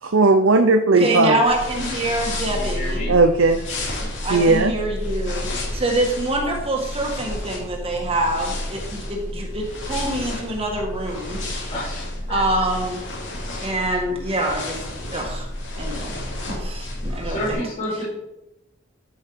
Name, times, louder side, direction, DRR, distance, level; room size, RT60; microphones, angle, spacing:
voice 1, 0.0-1.4 3.1-3.6 4.3-4.7, right 3 dB, 75° right, 6 dB, 0.7 m, -16 dB
voice 2, 1.0-3.1 4.2-11.4 12.3-13.0 13.6-14.8 15.1-15.5 15.7-16.2 16.5-17.6 18.0-18.1, right 1 dB, 30° right, 0 dB, 1.6 m, -25 dB
sound 1, 1.4-17.5, left 1 dB, 65° left, 2.8 m, -31 dB
voice 3, 2.4-3.1 5.5-5.8 11.7-12.0 12.3-12.4 17.2-18.0, left 1 dB, 35° left, -9 dB, 4.2 m, -30 dB
14.0 x 5.5 x 4.7 m, 0.93 s
head